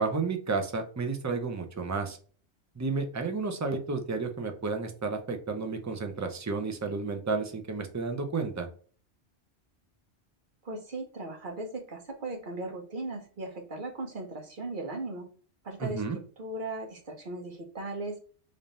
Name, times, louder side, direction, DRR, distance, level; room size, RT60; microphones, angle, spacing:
voice 1, 0.0-2.2 2.8-8.7 15.8-16.2, right 4 dB, 25° right, 5 dB, 0.4 m, -31 dB
voice 2, 10.6-15.3 15.6-18.2, right 2 dB, 50° right, 2 dB, 1.0 m, -37 dB
3.5 x 2.6 x 4.0 m, 0.42 s
omnidirectional pair, 1.2 m